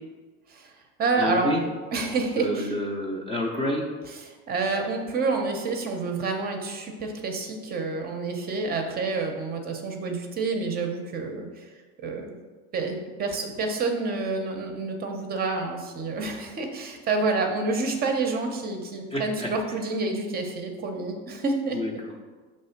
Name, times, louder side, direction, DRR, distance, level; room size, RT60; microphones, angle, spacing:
voice 1, 0.5-1.6 1.9-2.7 4.5-11.7 12.0-12.4 12.7-21.8, right 3 dB, 25° right, 3 dB, 0.6 m, -28 dB
voice 2, 1.2-1.6 2.4-3.9 19.1-19.5 21.7-22.1, left 1 dB, 15° left, -1 dB, 0.5 m, -28 dB
5.9 x 3.1 x 5.6 m, 1.4 s
cardioid pair, 155°, 35 cm